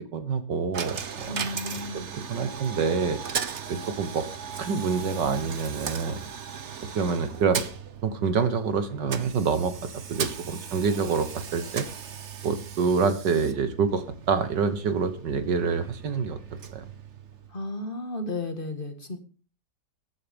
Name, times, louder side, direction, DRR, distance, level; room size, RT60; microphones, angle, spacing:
voice 1, 0.1-1.4 1.9-2.0 2.3-3.2 3.7-4.3 4.6-6.2 7.0-7.6 8.0-9.8 10.1-11.9 12.4-16.4 16.7-16.9, right 5 dB, 75° right, 10 dB, 1.9 m, -26 dB
Coin (dropping), 0.7-17.7, right 7 dB, 45° right, 1.2 m, -37 dB
voice 2, 1.3-2.1 17.5-19.2, left 2 dB, 30° left, 7 dB, 2.0 m, -33 dB
14.5 x 11.0 x 5.3 m, 0.38 s
omnidirectional pair, 1.9 m